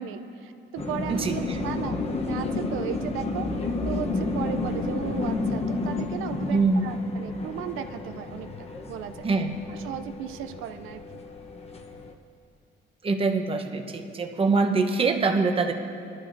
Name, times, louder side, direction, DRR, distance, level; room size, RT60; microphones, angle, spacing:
voice 1, 0.0-2.0 2.3-3.5 3.8-9.3 9.7-11.0, right 10 dB, 90° right, 8 dB, 0.5 m, -36 dB
sound 1, 0.8-12.1, left 3 dB, 30° left, 0.9 m, -31 dB
voice 2, 1.1-1.6 6.5-6.9 9.2-9.5 13.0-15.7, right 4 dB, 25° right, 4 dB, 0.9 m, -24 dB
21.0 x 12.0 x 2.6 m, 2.7 s
cardioid pair, 130°, 20 cm